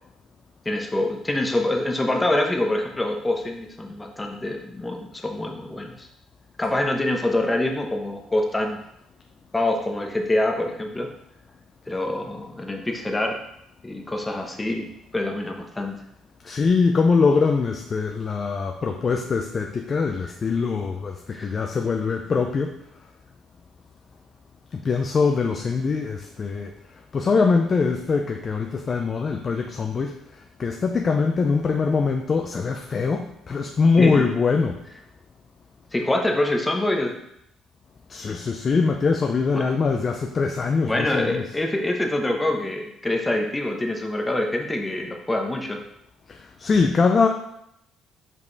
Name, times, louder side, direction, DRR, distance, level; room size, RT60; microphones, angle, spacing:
voice 1, 0.6-6.1 6.6-8.8 9.5-11.1 11.9-13.4 13.8-14.9 15.1-16.0 21.3-21.5 34.0-34.3 35.9-37.2 39.5-39.7 40.8-45.8, left 1 dB, 10° left, 2 dB, 0.9 m, -25 dB
voice 2, 16.4-22.8 24.7-34.8 38.1-41.4 46.3-47.3, left 4 dB, 30° left, 4 dB, 0.5 m, -23 dB
5.4 x 5.2 x 4.0 m, 0.79 s
cardioid pair, 130°, 0 cm